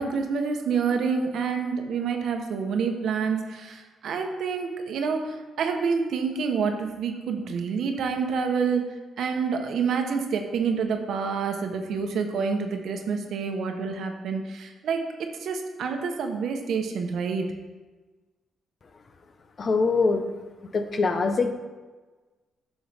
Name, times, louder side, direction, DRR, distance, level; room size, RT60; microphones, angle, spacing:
voice 1, 0.0-8.8 9.2-15.1 15.4-17.5, right 5 dB, 75° right, 5 dB, 0.9 m, -27 dB
voice 2, 19.6-20.3 20.7-21.5, left 4 dB, 45° left, 8 dB, 0.7 m, -23 dB
8.9 x 6.2 x 3.4 m, 1.3 s
cardioid pair, 85°, 0 cm